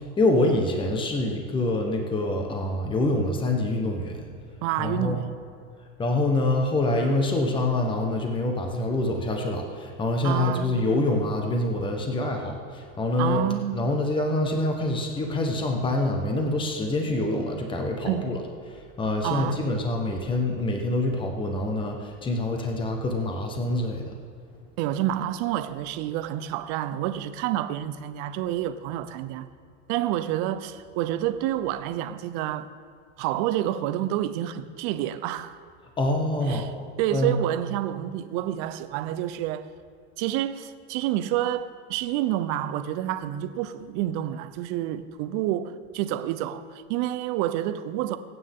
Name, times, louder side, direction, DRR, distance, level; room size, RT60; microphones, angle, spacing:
voice 1, 0.2-4.1 4.8-5.2 6.0-13.4 13.7-18.4 19.0-24.1 36.0-36.7 37.1-37.4, left 2 dB, 15° left, 1.2 m, -25 dB
voice 2, 4.6-5.4 10.2-10.8 13.2-13.9 18.0-18.4 19.2-19.7 24.8-29.5 29.9-32.8 33.2-35.6 36.4-39.7 40.2-48.2, right 12 dB, 45° right, 0.8 m, -28 dB
23.0 x 9.1 x 3.7 m
supercardioid pair, 140°, 37 cm